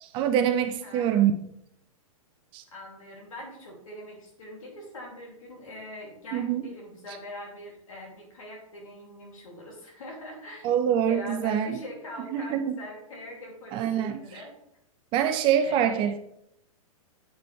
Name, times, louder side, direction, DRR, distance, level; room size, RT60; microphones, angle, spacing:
voice 1, 0.0-1.3 2.5-2.6 6.3-6.6 10.6-11.7 12.3-12.8 13.7-14.2 15.1-16.2, right 9 dB, 25° right, 9 dB, 0.5 m, -25 dB
voice 2, 0.8-1.2 2.7-10.7 11.1-14.5 15.6-16.0, left 1 dB, 65° left, 0 dB, 2.5 m, -42 dB
7.9 x 4.9 x 3.2 m, 0.76 s
figure-of-eight pair, 105°, 19 cm